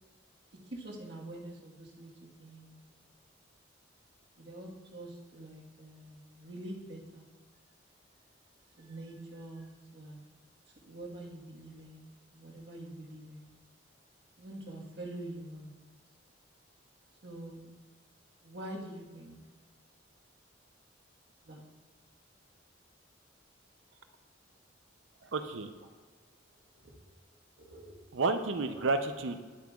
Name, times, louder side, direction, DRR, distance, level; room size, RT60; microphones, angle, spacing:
voice 1, 0.7-2.1 2.4-2.8 4.4-7.2 8.8-10.2 10.8-13.5 14.4-15.9 17.2-17.7 18.4-19.4 21.4-21.6 25.8-25.9 26.8-26.9 27.6-28.0 28.6-28.8, right 1 dB, 60° right, -2 dB, 1.4 m, -45 dB
voice 2, 25.3-25.7 28.1-29.4, right 3 dB, 75° right, 8 dB, 0.6 m, -31 dB
10.5 x 7.6 x 2.4 m, 1.4 s
head